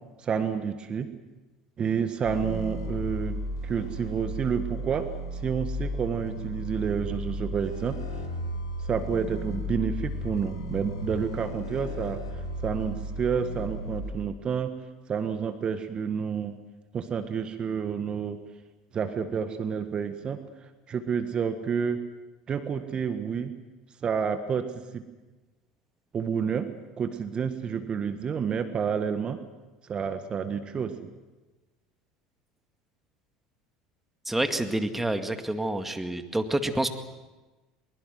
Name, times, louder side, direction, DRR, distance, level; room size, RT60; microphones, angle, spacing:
voice 1, 0.2-1.1 1.8-5.1 5.3-8.0 8.8-12.2 12.6-14.7 15.1-16.5 16.9-18.4 18.9-20.4 20.9-22.0 22.5-23.5 24.0-25.0 26.1-26.7 27.0-29.4 29.8-31.1, right 7 dB, 35° right, 9 dB, 1.7 m, -29 dB
sound 1, 2.2-14.1, equal, 75° left, 4.4 m, -34 dB
voice 2, 34.3-36.9, right 1 dB, 10° right, 7 dB, 2.0 m, -28 dB
22.5 x 22.0 x 7.8 m, 1.2 s
figure-of-eight pair, 70°, 3 cm